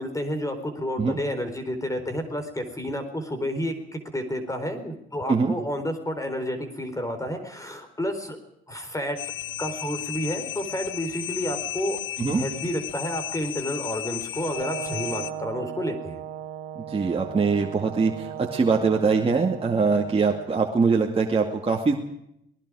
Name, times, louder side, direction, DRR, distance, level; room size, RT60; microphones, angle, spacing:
voice 1, 0.0-8.4 8.7-9.2 9.6-12.0 12.3-16.2, equal, 15° left, 8 dB, 4.2 m, -30 dB
sound 1, 9.2-15.3, left 14 dB, 80° left, 1.2 m, -34 dB
Brass instrument, 14.3-20.5, right 11 dB, 85° right, 2.3 m, -37 dB
voice 2, 16.8-21.9, right 4 dB, 30° right, 0 dB, 2.4 m, -23 dB
27.5 x 20.0 x 4.9 m, 0.78 s
cardioid pair, 90°, 20 cm